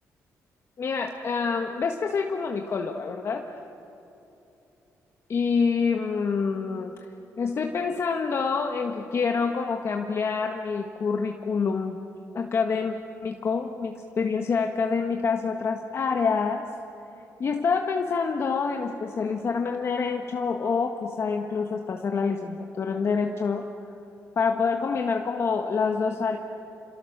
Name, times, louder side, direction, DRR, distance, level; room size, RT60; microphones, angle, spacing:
voice 1, 0.8-3.5 5.3-6.9 7.4-12.0 12.3-12.9 13.2-16.6 17.4-23.6 24.4-26.4, left 5 dB, 50° left, 3 dB, 1.5 m, -27 dB
28.0 x 27.5 x 6.8 m, 2.9 s
cardioid pair, 110°, 6 cm